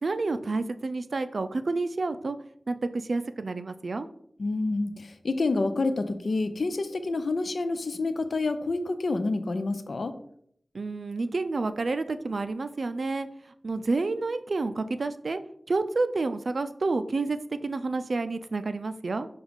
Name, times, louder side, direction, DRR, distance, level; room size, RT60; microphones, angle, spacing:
voice 1, 0.0-2.4 2.7-4.1 10.7-13.3 13.6-15.4 15.7-19.3, right 3 dB, 75° right, 11 dB, 0.3 m, -29 dB
voice 2, 4.4-10.1, left 3 dB, 80° left, 10 dB, 0.4 m, -28 dB
6.0 x 2.3 x 3.6 m, 0.67 s
wide cardioid pair, 50°, 0 cm